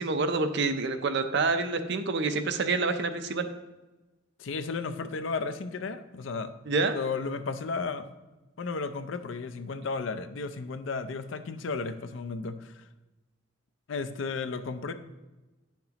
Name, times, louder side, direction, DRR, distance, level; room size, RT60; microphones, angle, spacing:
voice 1, 0.0-3.5 6.7-7.0, right 3 dB, 60° right, 8 dB, 0.6 m, -27 dB
voice 2, 4.4-6.5 6.9-8.1 8.6-12.8 13.9-14.9, left 4 dB, 65° left, 10 dB, 0.5 m, -34 dB
10.0 x 5.9 x 2.9 m, 1.1 s
head